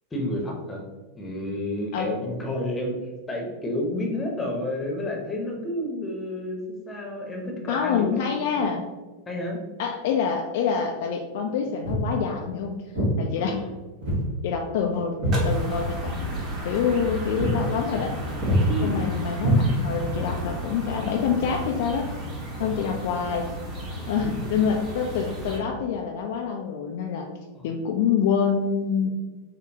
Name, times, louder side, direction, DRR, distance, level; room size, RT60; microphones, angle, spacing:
voice 1, 0.1-0.9 1.2-3.0 3.3-8.2 8.6-8.7 9.3-9.7 13.4-13.7 18.7-19.0 22.6-22.8 27.5-27.7, left 1 dB, 15° left, 0 dB, 0.8 m, -30 dB
voice 2, 7.7-8.8 9.8-12.8 13.2-13.6 14.4-15.2 15.4-16.3 16.6-18.1 18.8-22.1 22.6-23.5 24.1-27.3 27.6-29.1, left 6 dB, 50° left, 2 dB, 0.3 m, -26 dB
Walk footsteps, 11.8-12.1 12.9-13.2 14.0-14.3 14.6-16.0 16.3-16.5 16.9-17.1 17.4-17.6 17.9-18.1 18.4-18.7 19.4-20.1, equal, 60° right, 1.3 m, -24 dB
sound 1, 15.3-25.6, equal, 30° right, 1.1 m, -33 dB
5.1 x 2.1 x 2.7 m, 1.2 s
figure-of-eight pair, 90°, 0 cm